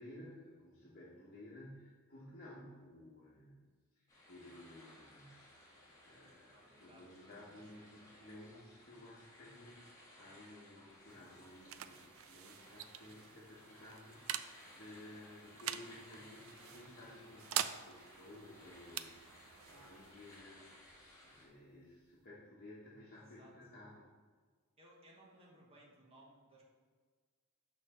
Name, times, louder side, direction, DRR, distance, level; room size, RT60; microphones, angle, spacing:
voice 1, 0.0-3.6 4.0-5.5 6.0-20.9 21.2-24.1, left 1 dB, 40° left, -7 dB, 1.3 m, -55 dB
sound 1, 4.1-21.4, left 1 dB, 15° left, 1.8 m, -60 dB
voice 2, 6.5-7.9 16.3-16.8 23.1-23.5 24.8-26.6, right 1 dB, 25° right, -3 dB, 1.3 m, -63 dB
sound 2, 10.9-22.3, right 11 dB, 65° right, 0.4 m, -46 dB
6.4 x 5.9 x 4.3 m, 1.5 s
head